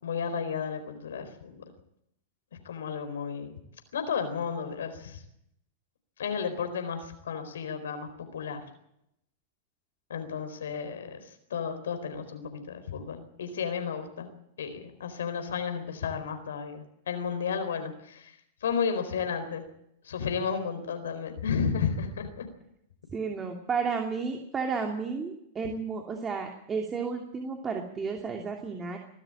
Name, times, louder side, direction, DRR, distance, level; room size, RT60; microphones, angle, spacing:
voice 1, 0.0-1.6 2.6-3.5 3.9-5.2 6.2-8.6 10.1-14.3 14.6-18.4 18.6-19.6 20.0-22.5, left 6 dB, 85° left, 8 dB, 4.2 m, -33 dB
voice 2, 23.1-29.0, right 5 dB, 25° right, 3 dB, 2.8 m, -32 dB
23.0 x 13.0 x 8.9 m, 0.76 s
hypercardioid pair, 110°, 0 cm